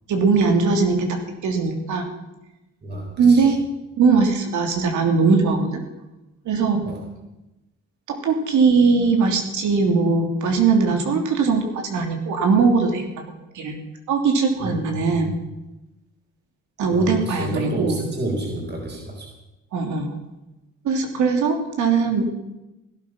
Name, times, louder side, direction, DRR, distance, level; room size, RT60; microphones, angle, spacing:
voice 1, 0.1-1.2 1.4-2.1 3.2-3.6 4.0-5.8 6.4-6.9 8.1-13.8 14.1-15.3 16.8-18.0 19.7-20.1 20.8-22.3, right 4 dB, 75° right, 3 dB, 3.1 m, -20 dB
voice 2, 2.8-3.4 6.8-7.0 14.6-15.2 16.9-19.3, right 1 dB, 35° right, 0 dB, 4.1 m, -30 dB
17.0 x 12.5 x 6.0 m, 0.98 s
cardioid pair, 90°, 30 cm